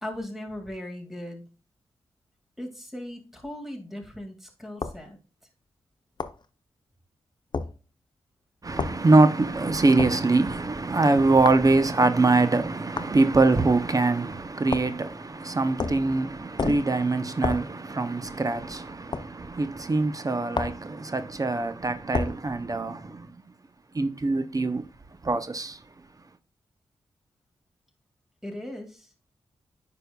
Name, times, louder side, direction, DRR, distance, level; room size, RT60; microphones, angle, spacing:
voice 1, 0.0-1.4 2.6-5.2 28.4-29.1, left 1 dB, 5° right, 2.2 m, -38 dB
sound 1, 4.8-5.0 6.2-6.4 7.5-7.7 8.8-9.0 10.0-10.2 11.4-11.7 13.0-13.1 14.7-15.0 15.8-16.1 16.6-16.9 17.4-17.7 19.1-19.3 20.5-20.8 22.1-22.4, left 4 dB, 45° left, 0.5 m, -30 dB
voice 2, 8.6-23.3 23.9-24.8 25.2-25.8, right 3 dB, 35° right, 0.7 m, -23 dB
9.0 x 5.3 x 2.3 m
cardioid pair, 50°, 11 cm